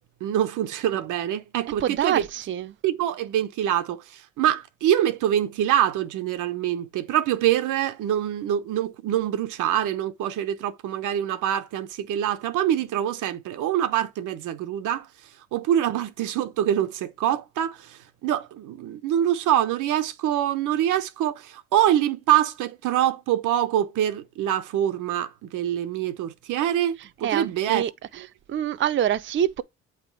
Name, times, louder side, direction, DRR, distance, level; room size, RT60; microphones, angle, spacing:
voice 1, 0.2-2.2 2.8-15.1 15.5-27.0 27.2-27.8, right 11 dB, 85° right, 0.8 m, -25 dB
voice 2, 1.8-2.7 27.2-28.2 28.5-29.6, right 10 dB, 40° right, 0.5 m, -26 dB
8.3 x 3.5 x 4.6 m
cardioid pair, 90°, 30 cm